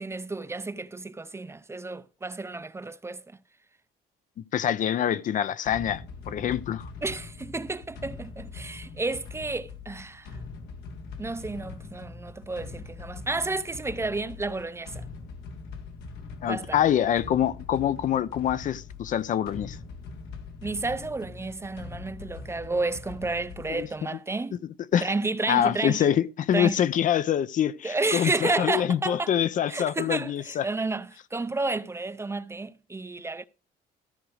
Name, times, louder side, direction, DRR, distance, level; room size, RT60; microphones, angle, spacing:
voice 1, 0.0-3.2 7.0-10.3 11.2-15.0 16.5-16.8 20.6-24.6 25.0-26.1 26.5-26.8 27.8-29.3 29.7-33.5, right 3 dB, 15° right, 0.6 m, -31 dB
voice 2, 4.5-6.9 16.4-19.8 23.7-23.9 24.9-25.1 25.5-30.7, left 10 dB, 50° left, 0.6 m, -25 dB
sound 1, 5.6-24.1, left 4 dB, 85° left, 1.8 m, -42 dB
14.0 x 4.9 x 6.5 m
cardioid pair, 110°, 17 cm